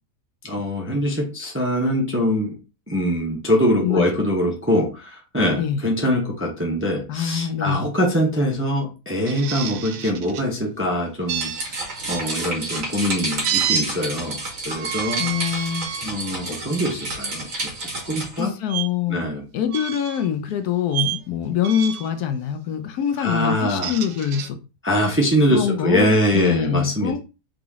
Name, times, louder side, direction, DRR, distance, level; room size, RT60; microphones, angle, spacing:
voice 1, 0.4-2.6 2.9-11.7 12.1-15.7 16.0-18.5 19.1-19.4 23.2-23.9 24.8-27.2, equal, 15° right, 0.5 m, -23 dB
voice 2, 7.1-7.8 15.2-15.9 18.4-19.3 19.5-24.6 25.5-27.2, left 9 dB, 75° left, 1.1 m, -24 dB
sound 1, 9.3-10.5 11.3-12.2 13.4-13.9 14.7-16.1 16.7-16.9 18.7-18.9 19.7-20.3 20.9-21.2 21.6-22.1 23.6-24.5, right 9 dB, 85° right, 1.2 m, -28 dB
sound 2, 11.3-18.5, right 2 dB, 55° right, 1.7 m, -30 dB
3.9 x 3.3 x 3.6 m
omnidirectional pair, 1.7 m